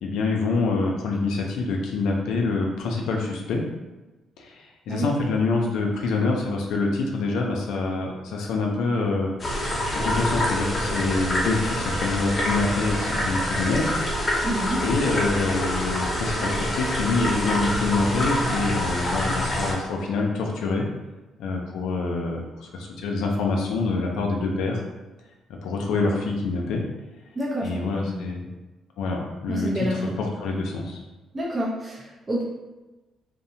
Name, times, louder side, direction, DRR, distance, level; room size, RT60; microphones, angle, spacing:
voice 1, 0.0-3.6 4.4-9.3 9.9-13.9 14.8-20.9 21.4-24.8 25.6-26.8 27.6-28.5 29.0-29.9 30.2-31.0, left 3 dB, 85° left, 0 dB, 0.4 m, -26 dB
sound 1, 9.4-19.7, left 1 dB, 30° left, 0.6 m, -26 dB
voice 2, 14.4-14.8 27.4-28.2 29.5-30.2 31.3-32.4, equal, 30° right, -5 dB, 0.5 m, -28 dB
2.7 x 2.0 x 2.6 m, 1.1 s
cardioid pair, 90°, 0 cm